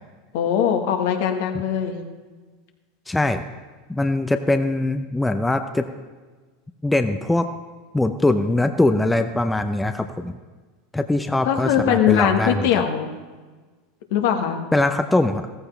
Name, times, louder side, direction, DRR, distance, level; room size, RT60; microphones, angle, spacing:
voice 1, 0.3-2.0 11.4-13.1 14.1-14.6, left 9 dB, 65° left, 4 dB, 1.6 m, -21 dB
voice 2, 3.1-3.4 3.9-5.9 6.8-7.5 7.9-10.4 10.9-12.8 14.7-15.6, left 2 dB, 10° left, 7 dB, 0.7 m, -22 dB
15.0 x 14.5 x 3.4 m, 1.4 s
hypercardioid pair, 85°, 0 cm